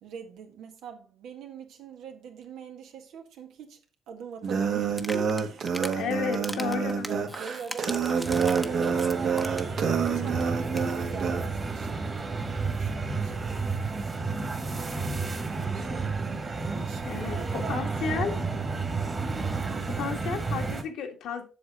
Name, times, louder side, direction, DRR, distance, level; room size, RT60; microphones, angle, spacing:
voice 1, 0.0-3.8 4.1-9.6 10.1-14.0 14.3-16.1 16.7-18.7, right 7 dB, 85° right, 1.7 m, -43 dB
sound 1, 4.4-11.4, right 6 dB, 65° right, 1.7 m, -28 dB
sound 2, 4.9-6.0 6.3-9.8 10.1-10.2 10.4-10.5 10.7-10.9, equal, ahead, 0.9 m, -38 dB
voice 2, 6.0-7.1 17.1-18.3 19.8-21.5, left 6 dB, 85° left, 1.9 m, -32 dB
sound 3, 8.2-20.8, right 4 dB, 30° right, 1.9 m, -31 dB
7.7 x 6.7 x 4.1 m
cardioid pair, 90°, 0 cm